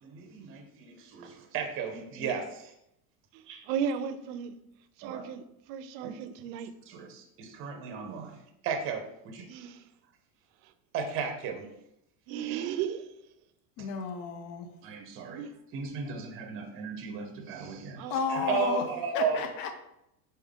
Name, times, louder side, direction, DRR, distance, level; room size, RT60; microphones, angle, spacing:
voice 1, 0.0-2.7 3.5-3.7 5.0-5.2 6.0-6.1 6.9-9.5 10.9-11.6 14.8-15.4 15.7-18.0 18.5-19.4, right 5 dB, 30° right, 0.6 m, -35 dB
voice 2, 3.3-4.6 5.0-6.7 9.5-9.9 10.6-10.7 11.6-11.7 12.3-13.2 15.3-15.5 18.0-18.2 18.5-18.8, right 8 dB, 70° right, 0.5 m, -35 dB
voice 3, 13.8-14.7 18.1-19.7, left 5 dB, 60° left, 0.7 m, -33 dB
4.1 x 3.6 x 3.6 m
cardioid pair, 155°, 42 cm